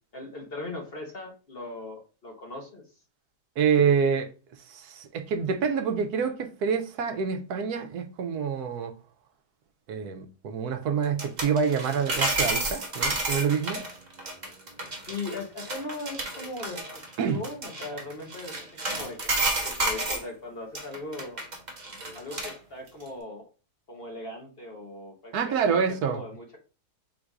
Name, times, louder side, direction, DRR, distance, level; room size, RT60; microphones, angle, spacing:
voice 1, 0.1-2.8 15.1-19.4 19.6-21.4 22.1-23.5 23.9-26.6, left 2 dB, 45° left, 1.0 m, -39 dB
voice 2, 3.6-4.3 4.7-8.9 9.9-13.8 17.2-17.4 25.3-26.2, right 6 dB, 75° right, 1.1 m, -27 dB
sound 1, 11.0-20.3 20.8-22.5 22.9-23.0, right 2 dB, 35° right, 0.9 m, -31 dB
3.9 x 2.5 x 4.5 m
omnidirectional pair, 1.7 m